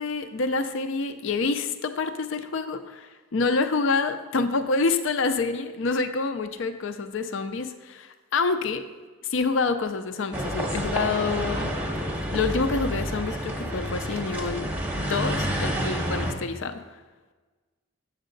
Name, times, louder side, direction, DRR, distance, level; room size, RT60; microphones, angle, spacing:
voice 1, 0.0-8.8 9.2-11.7 12.3-14.7 15.0-17.0, left 4 dB, 65° left, 9 dB, 0.5 m, -27 dB
sound 1, 10.3-16.3, equal, 10° right, 0.8 m, -29 dB
8.0 x 6.5 x 3.9 m, 1.3 s
head